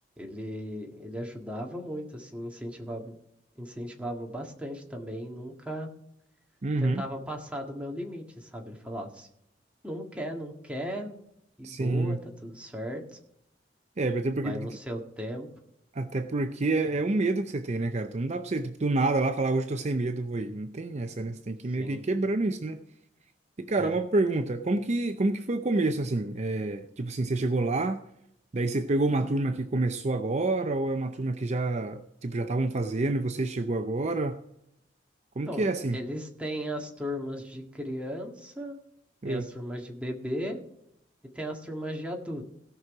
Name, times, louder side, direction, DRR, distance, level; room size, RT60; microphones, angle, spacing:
voice 1, 0.2-3.2 3.6-5.9 6.8-9.3 9.8-11.2 11.6-13.2 14.4-15.5 21.8-22.0 23.8-24.0 35.5-38.8 39.3-40.6 41.3-42.5, equal, 5° right, 1 dB, 1.7 m, -36 dB
voice 2, 6.6-7.0 11.6-12.2 14.0-14.7 15.9-22.8 23.6-28.0 28.5-34.4 35.4-36.0 39.2-39.5, right 2 dB, 40° right, 8 dB, 0.6 m, -28 dB
17.0 x 6.1 x 4.8 m, 0.77 s
head